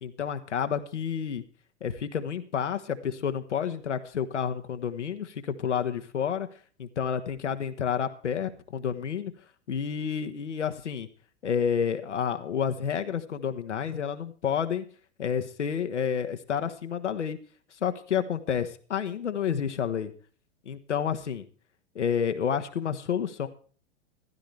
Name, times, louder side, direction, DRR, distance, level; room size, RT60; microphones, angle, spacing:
voice 1, 0.0-1.4 1.8-6.5 6.8-9.3 9.7-11.1 11.4-14.8 15.2-17.4 17.8-20.1 20.6-21.5 21.9-23.5, left 7 dB, 80° left, 8 dB, 1.3 m, -30 dB
15.0 x 13.0 x 3.3 m, 0.41 s
figure-of-eight pair, 95°, 35 cm